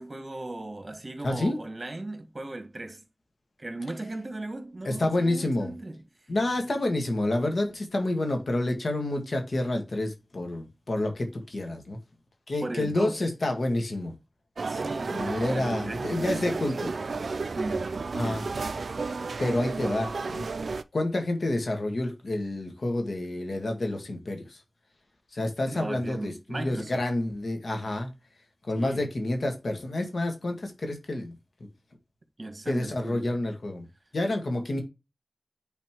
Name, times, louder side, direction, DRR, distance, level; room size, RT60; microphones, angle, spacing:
voice 1, 0.0-3.0 3.6-6.3 12.6-13.2 14.7-15.3 15.5-16.7 17.5-17.9 18.2-18.5 25.7-27.1 28.7-29.1 32.4-33.3, right 2 dB, 45° right, 1.8 m, -37 dB
voice 2, 1.2-1.6 4.9-5.7 6.3-12.0 12.5-14.1 15.1-16.9 18.1-18.4 19.4-20.5 20.9-24.6 25.3-28.1 28.6-31.4 32.7-33.9 34.1-34.8, left 1 dB, 75° left, 1.8 m, -29 dB
sound 1, 14.6-20.8, right 4 dB, 85° right, 0.4 m, -32 dB
9.3 x 4.2 x 3.0 m
cardioid pair, 45°, 0 cm